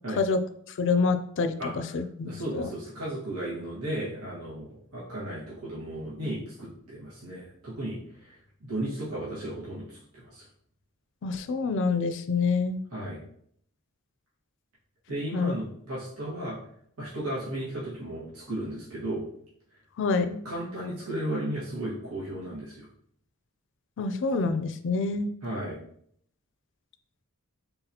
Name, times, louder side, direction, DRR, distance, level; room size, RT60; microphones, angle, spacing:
voice 1, 0.8-2.7 11.2-12.8 15.3-15.6 20.0-20.4 24.0-25.3, left 4 dB, 55° left, 10 dB, 0.4 m, -27 dB
voice 2, 2.2-10.4 12.9-13.2 15.1-16.6 17.0-19.2 20.4-22.9 25.4-25.8, right 1 dB, 90° right, -8 dB, 1.5 m, -35 dB
4.0 x 3.9 x 2.8 m, 0.66 s
head